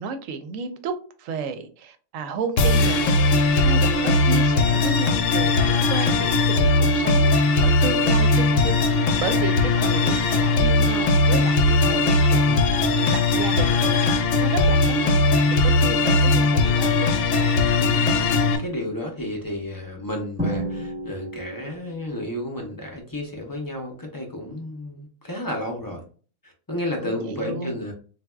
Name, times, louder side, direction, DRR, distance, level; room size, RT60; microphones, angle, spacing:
voice 1, 0.0-3.0 3.5-14.1 14.4-15.2 15.5-17.1 27.0-27.8, right 5 dB, 75° right, 0.9 m, -33 dB
sound 1, 2.6-18.6, left 2 dB, 70° left, 0.9 m, -19 dB
voice 2, 17.8-26.0 26.4-27.9, left 1 dB, 35° left, 0.3 m, -32 dB
Drum, 20.4-22.1, right 1 dB, 5° right, 1.0 m, -30 dB
4.1 x 2.3 x 2.2 m
omnidirectional pair, 1.4 m